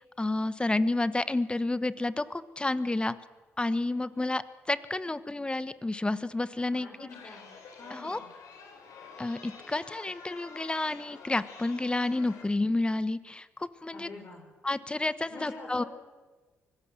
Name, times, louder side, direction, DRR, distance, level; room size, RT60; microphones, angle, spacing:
voice 1, 0.2-3.1 3.6-6.9 7.9-8.2 9.2-14.1 14.6-15.8, left 2 dB, 15° left, 15 dB, 1.2 m, -30 dB
voice 2, 6.7-7.5 7.8-8.3 13.9-14.4 15.3-15.9, left 3 dB, 55° left, -1 dB, 6.1 m, -46 dB
Chatter, 7.1-12.4, left 5 dB, 75° left, 4.0 m, -49 dB
24.5 x 17.0 x 7.6 m, 1.3 s
supercardioid pair, 60°, 6 cm